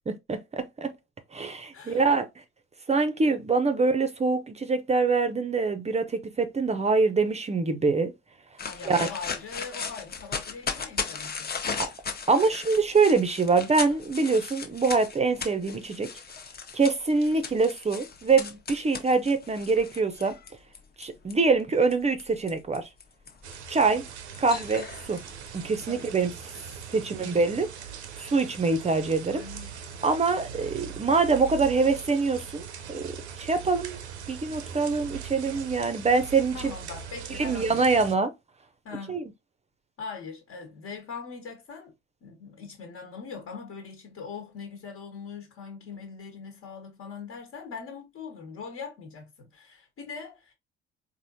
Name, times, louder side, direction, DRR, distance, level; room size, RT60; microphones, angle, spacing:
voice 1, 0.3-0.9 1.3-2.3 2.9-8.1 8.9-9.1 11.8-11.9 12.3-16.1 16.7-20.4 21.0-22.9 23.7-24.1 24.4-25.2 25.5-26.5 26.9-27.7 28.2-29.4 30.0-33.1 33.4-34.0 34.3-36.7 37.3-38.3 39.1-39.2, right 4 dB, 20° right, 0.6 m, -24 dB
voice 2, 1.7-2.1 8.6-11.5 25.9-26.1 26.9-27.3 28.1-28.3 29.3-29.7 36.5-37.8 38.8-39.2 40.0-41.9 42.2-50.5, left 5 dB, 45° left, 1.3 m, -41 dB
sound 1, 8.6-21.3 21.9-25.8, left 5 dB, 30° left, 0.9 m, -37 dB
sound 2, 23.4-38.1, right 8 dB, 80° right, 0.6 m, -41 dB
4.2 x 2.6 x 2.7 m
figure-of-eight pair, 55°, 33 cm